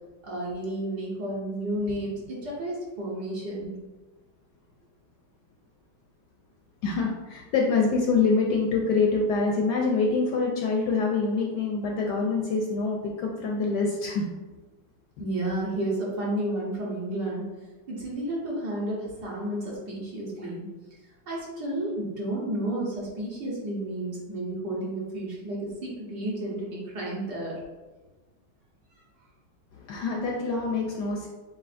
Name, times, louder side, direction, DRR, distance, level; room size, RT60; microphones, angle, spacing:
voice 1, 0.2-3.7 15.2-17.5 17.9-20.6 21.3-27.5, right 1 dB, 60° right, -6 dB, 1.4 m, -31 dB
voice 2, 6.8-14.3 29.7-31.3, left 4 dB, 75° left, 0 dB, 0.9 m, -25 dB
7.2 x 2.6 x 2.5 m, 1.2 s
omnidirectional pair, 2.3 m